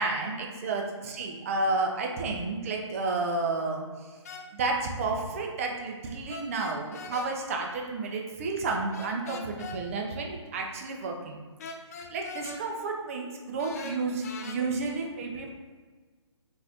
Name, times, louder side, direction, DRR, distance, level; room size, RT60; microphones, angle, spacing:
voice 1, 0.0-3.9 4.5-11.4 12.1-15.5, right 3 dB, 30° right, 1 dB, 0.4 m, -31 dB
sound 1, 4.2-4.4 6.3-7.3 8.9-9.8 11.6-12.6 13.6-14.6, left 4 dB, 35° left, 0.3 m, -41 dB
4.0 x 2.5 x 2.8 m, 1.4 s
hypercardioid pair, 150°, 15 cm